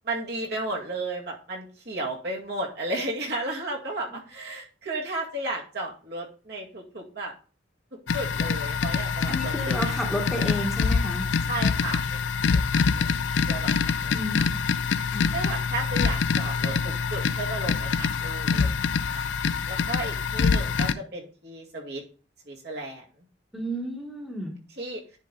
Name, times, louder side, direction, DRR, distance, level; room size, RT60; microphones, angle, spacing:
voice 1, 0.0-7.3 8.1-9.6 9.8-9.9 11.5-12.2 12.5-12.6 13.0-13.1 13.5-13.7 14.0-14.5 15.3-18.7 19.1-19.2 19.7-22.0 22.5-23.0 24.8-25.0, right 2 dB, 60° right, -2 dB, 2.1 m, -33 dB
sound 1, 8.1-20.9, left 5 dB, 75° left, 0.4 m, -25 dB
voice 2, 9.2-11.3 14.1-14.6 15.1-15.3 23.5-24.6, equal, ahead, -1 dB, 1.3 m, -32 dB
10.0 x 4.2 x 3.9 m, 0.37 s
head